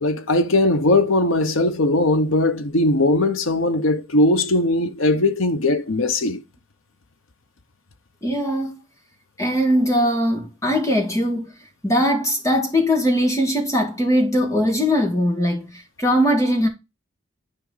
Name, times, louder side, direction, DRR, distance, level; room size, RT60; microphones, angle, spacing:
voice 1, 0.0-6.4, left 2 dB, 85° left, 0.9 m, -19 dB
voice 2, 8.2-8.7 9.4-11.5 11.8-16.7, equal, 15° left, 1.8 m, -20 dB
9.9 x 4.8 x 4.0 m
head